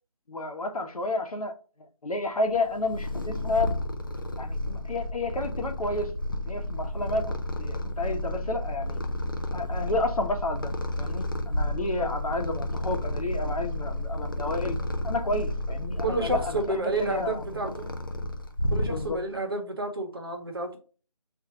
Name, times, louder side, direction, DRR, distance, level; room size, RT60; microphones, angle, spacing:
voice 1, 0.3-1.6 2.0-3.7 4.4-6.1 6.4-9.0 9.5-10.7 11.0-14.8 15.0-17.7 18.8-19.2, left 2 dB, 70° left, 1.0 m, -31 dB
Purr, 2.5-19.4, left 1 dB, 35° left, 0.4 m, -32 dB
voice 2, 11.7-12.1 16.0-17.9 18.7-20.8, right 2 dB, 40° right, 1.0 m, -30 dB
3.7 x 2.6 x 4.2 m
figure-of-eight pair, 175°, 19 cm